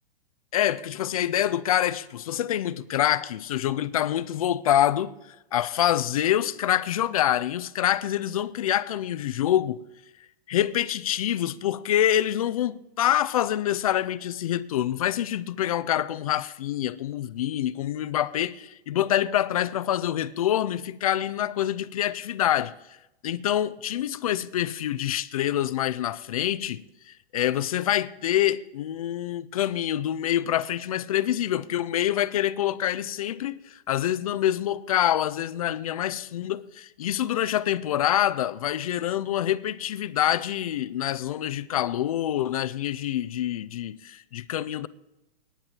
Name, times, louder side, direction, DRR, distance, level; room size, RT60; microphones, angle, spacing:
voice 1, 0.5-5.1 5.5-9.8 10.5-22.7 23.2-44.9, left 11 dB, 35° left, 0.4 m, -26 dB
9.8 x 8.8 x 8.8 m
hypercardioid pair, 165°, 32 cm